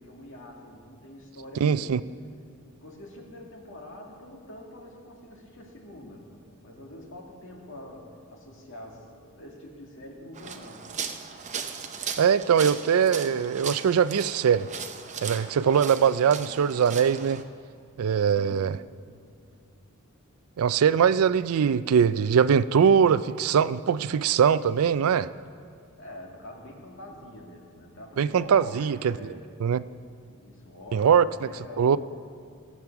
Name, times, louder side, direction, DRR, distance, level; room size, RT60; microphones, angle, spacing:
voice 1, 0.0-2.0 2.7-10.9 18.3-18.7 26.0-29.5 30.3-32.0, left 1 dB, 60° left, 0 dB, 2.1 m, -45 dB
voice 2, 1.6-2.0 12.2-14.7 15.2-17.4 18.0-18.7 20.6-25.3 28.2-29.1 29.6-29.8 30.9-31.2 31.8-32.0, right 7 dB, 80° right, 16 dB, 0.4 m, -22 dB
sound 1, 10.3-17.4, right 6 dB, 35° right, 0.7 m, -37 dB
17.5 x 7.4 x 5.9 m, 2.3 s
head